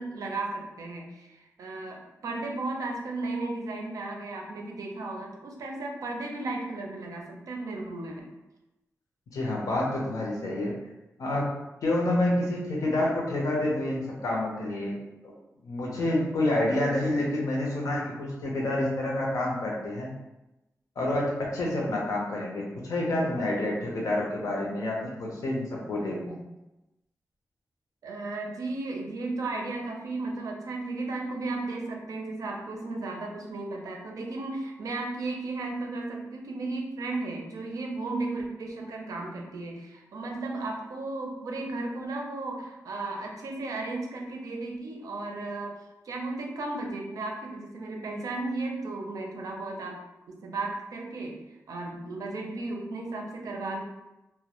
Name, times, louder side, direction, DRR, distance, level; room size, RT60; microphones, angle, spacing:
voice 1, 0.0-8.3 28.0-50.0 50.4-51.4 51.7-53.8, right 2 dB, 80° right, 1 dB, 0.4 m, -35 dB
voice 2, 9.3-10.7 11.2-11.5 11.8-15.0 15.2-15.3 15.6-20.1 21.0-26.4, left 1 dB, 80° left, -3 dB, 0.6 m, -28 dB
2.1 x 2.0 x 2.8 m, 0.98 s
wide cardioid pair, 125°, 6 cm